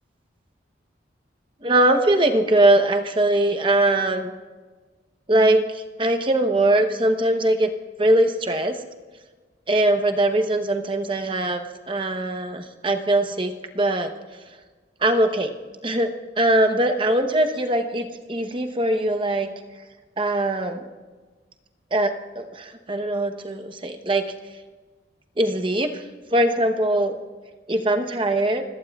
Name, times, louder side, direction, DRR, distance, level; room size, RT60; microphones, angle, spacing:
voice 1, 1.6-4.3 5.3-7.7 8.0-8.8 9.7-14.1 15.0-15.5 15.8-16.1 16.4-19.5 20.2-20.8 21.9-24.3 25.4-26.0 26.3-27.2 27.7-28.6, right 1 dB, 25° right, 6 dB, 0.9 m, -21 dB
30.0 x 17.5 x 2.4 m, 1.3 s
head